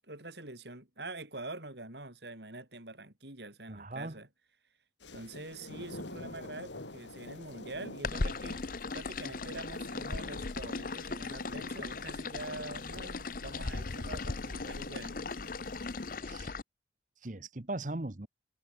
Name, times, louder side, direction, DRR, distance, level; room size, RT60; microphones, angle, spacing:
voice 1, 0.0-4.3 5.1-8.7 8.9-15.2, right 2 dB, 70° right, 5.4 m, -45 dB
voice 2, 3.7-4.2 16.2-16.5 17.2-18.3, right 2 dB, 45° right, 1.2 m, -39 dB
sound 1, 5.0-16.2, left 2 dB, 85° left, 3.4 m, -48 dB
sound 2, 8.0-16.6, left 3 dB, 50° left, 0.8 m, -38 dB
head